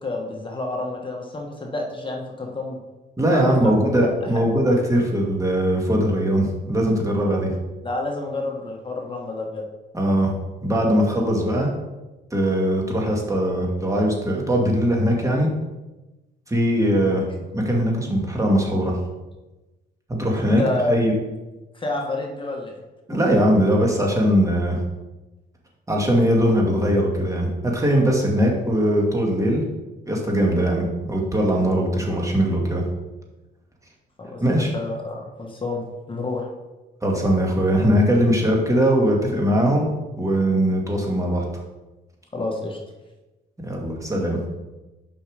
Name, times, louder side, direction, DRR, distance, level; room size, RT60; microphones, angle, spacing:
voice 1, 0.0-2.8 3.3-3.7 4.0-4.1 7.8-9.6 20.4-21.0 21.7-22.8 34.2-36.5 42.3-42.8, left 2 dB, 25° left, 1 dB, 1.4 m, -29 dB
voice 2, 3.2-7.5 9.9-10.3 10.6-11.7 12.3-15.5 16.5-17.3 17.5-19.0 20.1-20.6 20.9-21.1 23.1-24.8 25.9-29.6 30.1-32.8 34.4-34.7 37.0-39.9 40.2-41.4 43.6-44.4, equal, 15° right, -1 dB, 2.0 m, -20 dB
6.8 x 5.4 x 5.1 m, 1.1 s
cardioid pair, 90°, 20 cm